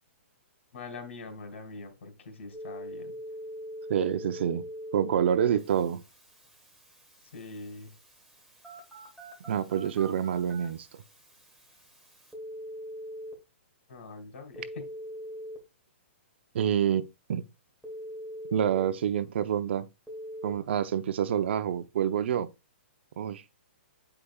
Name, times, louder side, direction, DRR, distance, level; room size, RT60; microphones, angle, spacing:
voice 1, 0.7-3.2 7.3-7.9 10.5-10.6 13.9-14.8, left 3 dB, 70° left, 2.5 m, -43 dB
Telephone, 2.5-13.3 14.6-15.6 17.8-18.8 20.1-20.5, equal, 5° right, 1.6 m, -43 dB
voice 2, 3.9-4.7 4.9-6.0 9.5-10.9 16.5-17.5 18.5-19.9 20.4-22.5 23.2-23.4, right 9 dB, 60° right, 0.6 m, -27 dB
8.6 x 4.9 x 2.3 m
hypercardioid pair, 150°, 7 cm